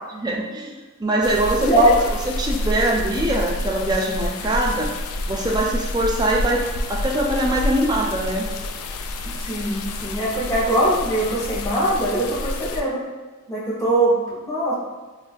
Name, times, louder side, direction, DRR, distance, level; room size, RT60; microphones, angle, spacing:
voice 1, 0.1-2.0 2.4-4.9 5.3-8.5, right 1 dB, 20° right, -1 dB, 0.3 m, -23 dB
sound 1, 1.2-12.8, left 1 dB, 85° left, 0.3 m, -28 dB
voice 2, 1.6-1.9 9.4-13.0 13.5-14.7, right 1 dB, 15° left, -7 dB, 0.7 m, -21 dB
2.4 x 2.4 x 3.9 m, 1.3 s
head